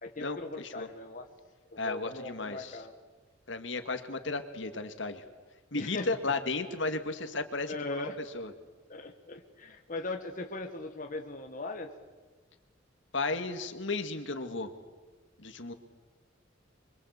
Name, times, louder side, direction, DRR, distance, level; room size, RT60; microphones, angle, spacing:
voice 1, 0.0-1.3 1.7-2.9 5.7-6.1 7.7-8.2 8.9-11.9, left 2 dB, 45° left, 4 dB, 1.8 m, -39 dB
voice 2, 1.8-2.8 3.5-5.2 5.7-7.7 8.3-8.5 13.1-14.7 15.4-15.7, left 3 dB, 65° left, 8 dB, 2.3 m, -34 dB
27.5 x 24.5 x 8.4 m, 1.3 s
head